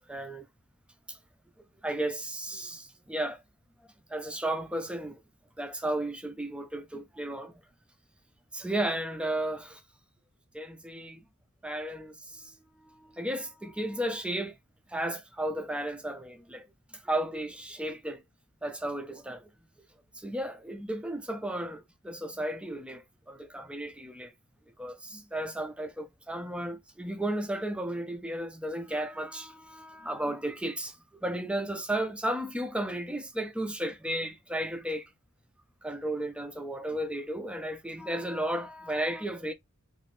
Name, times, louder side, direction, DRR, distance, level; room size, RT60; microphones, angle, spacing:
voice 1, 0.1-0.5 1.1-1.2 1.8-3.4 4.1-5.2 5.6-7.6 8.5-9.8 10.5-11.2 11.6-12.1 12.4-12.5 13.0-14.6 14.9-16.7 17.0-18.2 18.6-19.5 20.1-24.3 24.8-31.0 31.2-35.1 35.8-39.5, right 1 dB, 5° right, 0.5 m, -34 dB
2.9 x 2.6 x 3.1 m
head